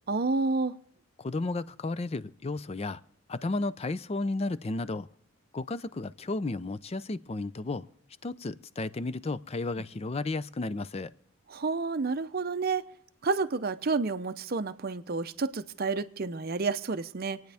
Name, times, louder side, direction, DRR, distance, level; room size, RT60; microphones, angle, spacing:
voice 1, 0.1-0.8 11.5-12.8 13.2-17.4, right 4 dB, 45° right, 0.6 m, -30 dB
voice 2, 1.2-3.0 3.3-5.1 5.5-7.9 8.2-11.1, left 2 dB, 30° left, 0.4 m, -33 dB
27.0 x 9.3 x 3.4 m
head